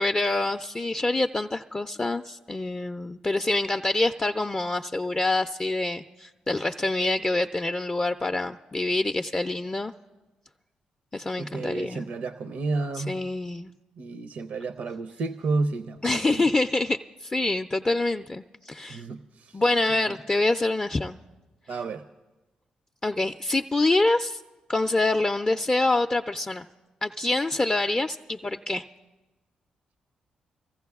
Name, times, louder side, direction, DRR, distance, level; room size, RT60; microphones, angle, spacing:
voice 1, 0.0-9.9 11.1-12.1 13.0-13.7 16.0-19.0 19.5-21.2 23.0-24.4 24.7-26.7 27.0-28.8, left 2 dB, 25° left, 7 dB, 0.4 m, -26 dB
voice 2, 11.4-13.2 14.0-16.5 18.9-19.6 20.1-20.2 21.7-22.0, right 3 dB, 65° right, 10 dB, 0.5 m, -31 dB
25.0 x 15.0 x 2.3 m, 1.1 s
hypercardioid pair, 40°, 3 cm